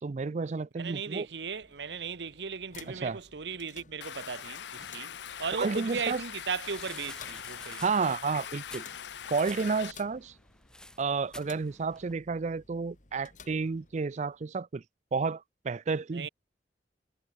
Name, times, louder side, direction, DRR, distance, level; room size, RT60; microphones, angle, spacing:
voice 1, 0.0-1.3 2.9-3.2 5.6-6.2 7.8-8.8 9.3-10.3 11.0-14.8 15.1-16.3, right 4 dB, 40° right, 0.4 m, -31 dB
voice 2, 0.8-5.1 5.4-7.8 16.1-16.3, right 5 dB, 75° right, 0.9 m, -36 dB
sound 1, 1.1-14.4, left 5 dB, 45° left, 3.5 m, -56 dB
Stream, 4.0-9.9, left 9 dB, 80° left, 0.6 m, -42 dB
sound 2, 5.3-12.1, left 1 dB, 5° left, 1.5 m, -52 dB
head